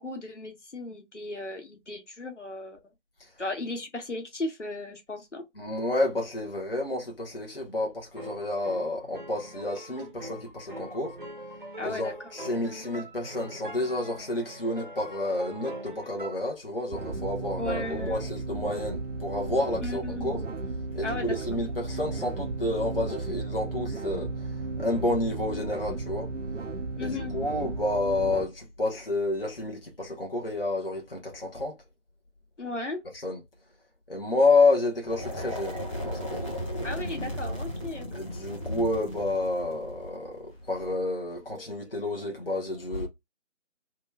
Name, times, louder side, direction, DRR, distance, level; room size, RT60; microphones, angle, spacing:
voice 1, 0.0-2.8 3.4-5.4 11.8-12.1 12.6-12.8 17.6-18.3 19.8-20.4 21.0-21.3 27.0-27.4 32.6-33.0 36.8-38.1, left 2 dB, 80° left, 1.3 m, -36 dB
voice 2, 5.6-11.2 11.8-20.4 20.9-26.3 27.0-31.8 33.1-33.4 34.1-36.6 38.1-43.1, left 2 dB, 50° left, 0.8 m, -29 dB
sound 1, 8.2-16.3, right 1 dB, 45° right, 0.6 m, -43 dB
sound 2, 16.9-28.5, right 3 dB, 90° right, 0.7 m, -34 dB
sound 3, 35.0-41.0, equal, 25° left, 1.1 m, -35 dB
3.0 x 2.2 x 3.2 m
figure-of-eight pair, 175°, 36 cm